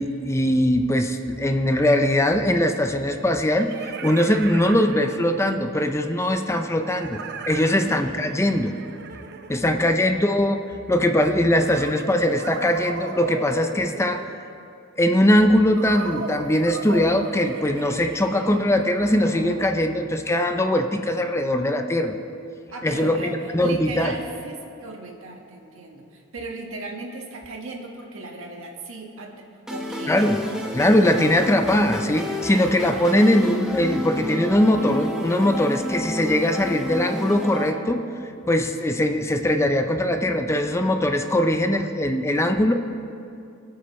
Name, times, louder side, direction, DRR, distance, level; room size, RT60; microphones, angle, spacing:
voice 1, 0.0-7.2 7.5-8.7 9.5-10.6 10.9-14.3 15.0-22.1 22.8-24.1 30.1-30.4 30.7-38.0 38.5-42.7, left 1 dB, 15° left, 6 dB, 0.5 m, -21 dB
sound 1, 1.8-1.9 3.2-5.6 6.9-10.3 11.5-14.6 15.8-20.0, right 4 dB, 55° right, 0.7 m, -36 dB
voice 2, 22.7-30.2, right 2 dB, 75° right, 1 dB, 1.6 m, -37 dB
sound 2, 29.7-37.7, left 1 dB, 5° right, 1.3 m, -30 dB
24.0 x 8.4 x 3.1 m, 2.5 s
head